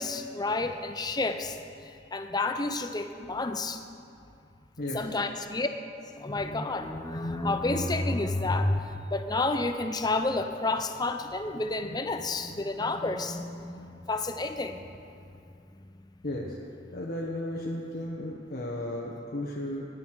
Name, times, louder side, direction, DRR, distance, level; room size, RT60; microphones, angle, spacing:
voice 1, 0.0-3.8 4.9-5.7 6.2-14.9, left 2 dB, 20° left, 7 dB, 0.7 m, -30 dB
voice 2, 4.8-5.2 16.2-16.6 16.9-19.9, left 1 dB, 50° left, -3 dB, 1.2 m, -34 dB
19.0 x 9.5 x 4.8 m, 2.5 s
head